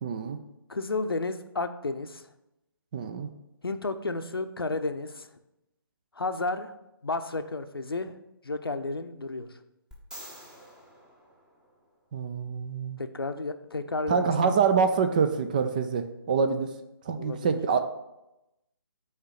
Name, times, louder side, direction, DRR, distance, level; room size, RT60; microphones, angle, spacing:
voice 1, 0.0-0.4 2.9-3.3 12.1-13.0 14.1-16.7 17.1-17.8, right 6 dB, 20° right, 8 dB, 0.4 m, -26 dB
voice 2, 0.7-2.2 3.6-5.3 6.1-6.7 7.0-8.1 8.4-9.5 13.0-14.5 17.1-17.6, left 3 dB, 75° left, 9 dB, 0.7 m, -32 dB
sound 1, 9.9-12.1 15.6-15.7, equal, 5° right, 0.9 m, -48 dB
6.5 x 4.4 x 5.7 m, 0.91 s
figure-of-eight pair, 145°, 12 cm